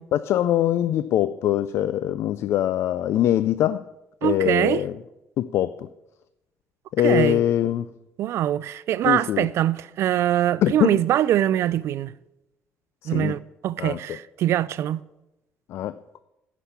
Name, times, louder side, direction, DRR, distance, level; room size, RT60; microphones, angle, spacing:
voice 1, 0.1-3.8 4.2-5.0 5.4-5.9 6.9-7.9 9.0-9.5 10.6-11.0 13.0-13.4 13.8-14.0 15.7-16.2, left 11 dB, 70° left, 0.4 m, -23 dB
voice 2, 4.2-4.8 7.0-7.4 8.2-12.1 13.1-15.0, right 12 dB, 70° right, 0.3 m, -23 dB
10.0 x 6.0 x 8.1 m
cardioid pair, 105°, 5 cm